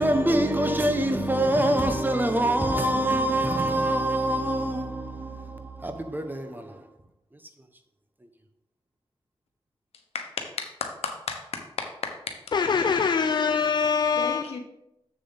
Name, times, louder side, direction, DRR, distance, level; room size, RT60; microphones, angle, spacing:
voice 1, 0.0-6.9, right 1 dB, 20° right, 1.1 m, -25 dB
voice 2, 10.6-12.3 14.1-14.6, left 5 dB, 85° left, 1.1 m, -34 dB
voice 3, 12.5-14.6, left 6 dB, 45° left, 0.4 m, -24 dB
7.5 x 6.9 x 4.1 m
cardioid pair, 65°, 10 cm